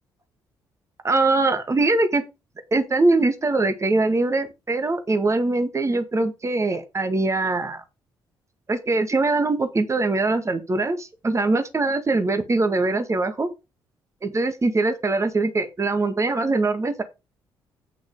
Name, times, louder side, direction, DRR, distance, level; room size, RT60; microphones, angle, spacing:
voice 1, 1.0-2.2 2.7-7.8 8.7-13.5 14.2-17.0, right 3 dB, 25° right, 1.8 m, -22 dB
8.9 x 6.1 x 4.8 m
figure-of-eight pair, 45°, 11 cm